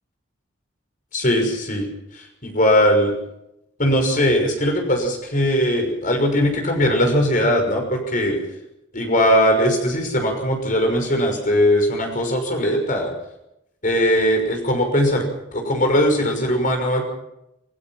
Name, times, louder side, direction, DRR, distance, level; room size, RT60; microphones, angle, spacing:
voice 1, 1.1-1.9 2.1-3.1 3.8-8.4 8.9-13.1 13.8-15.2 15.5-17.0, equal, 45° left, 3 dB, 6.1 m, -19 dB
28.0 x 17.0 x 5.9 m, 0.84 s
head